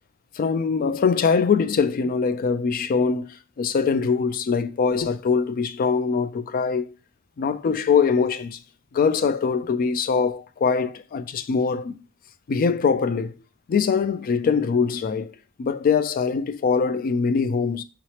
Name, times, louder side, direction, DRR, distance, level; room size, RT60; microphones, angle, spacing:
voice 1, 0.4-6.9 7.4-8.6 8.9-12.0 12.5-13.3 13.7-15.3 15.6-17.8, left 5 dB, 40° left, 0.3 m, -22 dB
3.9 x 3.1 x 2.8 m
head